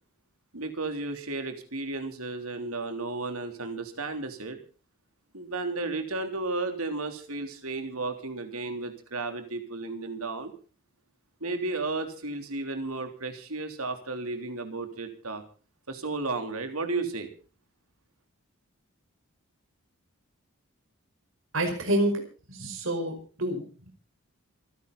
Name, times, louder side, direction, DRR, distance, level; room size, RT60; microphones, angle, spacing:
voice 1, 0.5-4.6 5.3-10.5 11.4-15.4 15.9-17.3, right 3 dB, 80° right, 6 dB, 3.4 m, -33 dB
voice 2, 21.5-22.2 22.5-23.1 23.4-23.9, right 1 dB, 60° right, 4 dB, 5.2 m, -28 dB
27.5 x 10.5 x 4.1 m, 0.38 s
head